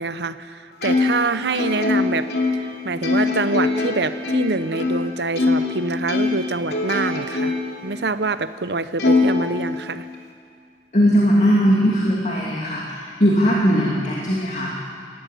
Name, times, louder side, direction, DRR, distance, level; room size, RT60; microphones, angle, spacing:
voice 1, 0.0-2.3 2.8-7.5 7.8-10.1, right 3 dB, 70° right, 13 dB, 0.8 m, -25 dB
Plucked string instrument, 0.8-5.8 6.1-7.8 8.2-8.3 9.0-10.2, left 3 dB, 65° left, 3.1 m, -22 dB
voice 2, 10.9-14.7, equal, 40° left, -3 dB, 2.6 m, -19 dB
19.5 x 14.5 x 9.3 m, 2.2 s
head